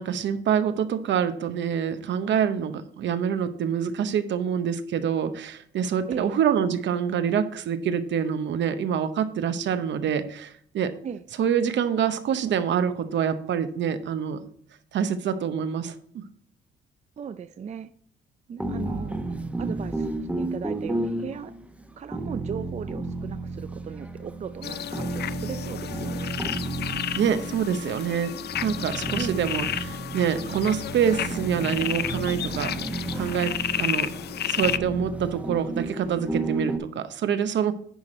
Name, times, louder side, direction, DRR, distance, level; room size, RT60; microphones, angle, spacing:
voice 1, 0.0-10.9 11.4-14.4 14.9-16.2 27.2-34.1 34.5-37.7, right 8 dB, 65° right, 11 dB, 0.9 m, -26 dB
voice 2, 17.2-17.9 18.5-21.5 22.0-26.3 29.1-29.5, right 7 dB, 35° right, 12 dB, 0.4 m, -37 dB
sound 1, 18.6-36.8, right 2 dB, 5° right, 1.0 m, -32 dB
sound 2, 24.6-34.8, left 10 dB, 55° left, 0.5 m, -32 dB
10.5 x 4.9 x 4.3 m, 0.62 s
cardioid pair, 90°, 20 cm